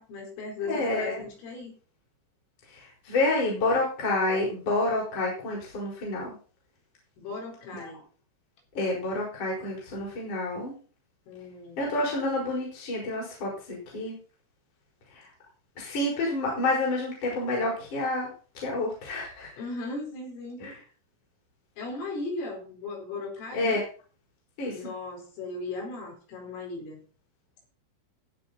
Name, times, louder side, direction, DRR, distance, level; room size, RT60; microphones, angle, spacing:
voice 1, 0.0-1.7 7.2-8.0 11.3-11.9 19.6-20.6 21.8-23.8 24.7-27.0, left 3 dB, 80° left, 1 dB, 6.8 m, -37 dB
voice 2, 0.6-1.2 2.7-6.3 7.7-7.9 8.8-10.7 11.8-14.2 15.1-15.2 15.8-18.3 18.6-19.5 20.6-20.7 23.5-23.8 24.6-24.8, left 2 dB, 40° left, -3 dB, 5.7 m, -29 dB
19.0 x 7.0 x 4.0 m, 0.37 s
omnidirectional pair, 5.8 m